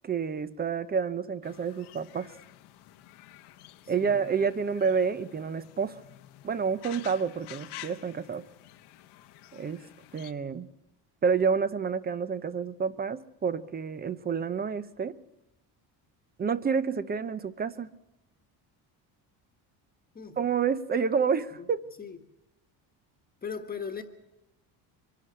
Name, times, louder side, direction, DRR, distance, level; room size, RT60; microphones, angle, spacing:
voice 1, 0.0-2.3 3.9-6.0 6.4-8.5 9.5-9.8 10.1-10.7 11.2-15.2 16.4-17.9 20.4-21.8, right 6 dB, 25° right, 14 dB, 0.7 m, -29 dB
sound 1, 1.4-10.3, left 14 dB, 75° left, 1.1 m, -50 dB
voice 2, 3.8-4.3 20.1-20.4 21.6-21.7 22.0-22.2 23.4-24.0, left 6 dB, 20° left, 5 dB, 1.4 m, -38 dB
24.5 x 11.5 x 9.4 m, 0.94 s
cardioid pair, 150°, 40 cm